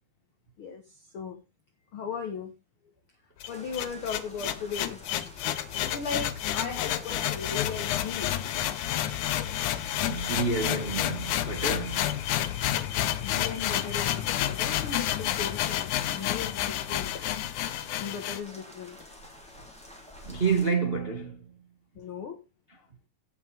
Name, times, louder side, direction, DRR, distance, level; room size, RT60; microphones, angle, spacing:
voice 1, 0.6-1.4 1.9-2.5 3.5-5.0 5.7-8.7 9.0-9.2 13.2-17.3 18.0-19.1 21.9-22.4, left 5 dB, 55° left, 1.7 m, -37 dB
sound 1, 3.4-18.4, left 12 dB, 75° left, 2.3 m, -30 dB
sound 2, 3.5-20.7, left 1 dB, ahead, 2.7 m, -49 dB
voice 2, 9.9-12.1 20.2-21.6, right 4 dB, 30° right, 1.2 m, -29 dB
16.5 x 6.4 x 3.4 m
omnidirectional pair, 3.6 m